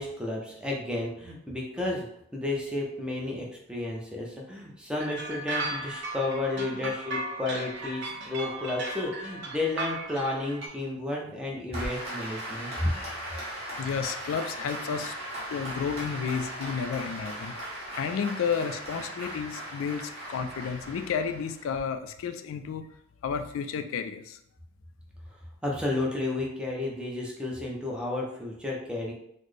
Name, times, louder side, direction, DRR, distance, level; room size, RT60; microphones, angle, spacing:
voice 1, 0.0-2.1 2.3-12.9 25.6-29.1, left 2 dB, 5° right, -2 dB, 0.6 m, -32 dB
sound 1, 5.0-10.7, right 2 dB, 60° right, 0.7 m, -36 dB
Applause, 11.7-21.8, right 1 dB, 30° right, 1.2 m, -38 dB
voice 2, 13.5-15.1 15.5-17.6 17.9-22.9 23.2-24.4, left 6 dB, 90° left, 8 dB, 0.3 m, -32 dB
4.0 x 2.1 x 3.2 m, 0.76 s
head